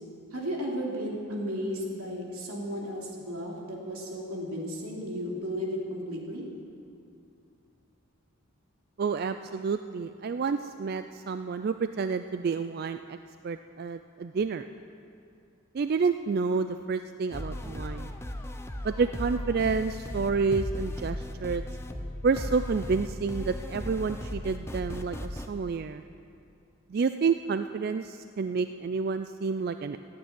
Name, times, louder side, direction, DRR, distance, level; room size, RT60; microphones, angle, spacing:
voice 1, 0.3-6.5, equal, 85° right, -2 dB, 3.0 m, -34 dB
voice 2, 9.0-13.2 13.4-14.7 15.7-18.1 18.8-21.6 22.2-26.0 26.9-30.0, right 5 dB, 45° right, 10 dB, 0.3 m, -29 dB
sound 1, 17.3-25.5, left 1 dB, 10° left, 0.6 m, -36 dB
14.5 x 8.8 x 9.3 m, 2.5 s
head